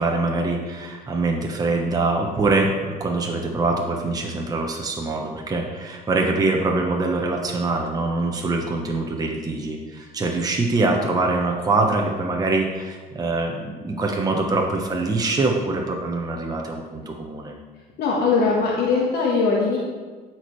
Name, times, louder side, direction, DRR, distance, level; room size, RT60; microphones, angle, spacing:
voice 1, 0.0-17.5, right 3 dB, 20° right, 0 dB, 0.9 m, -24 dB
voice 2, 18.0-19.8, left 4 dB, 75° left, -4 dB, 1.3 m, -20 dB
12.5 x 4.5 x 3.1 m, 1.4 s
cardioid pair, 110°, 17 cm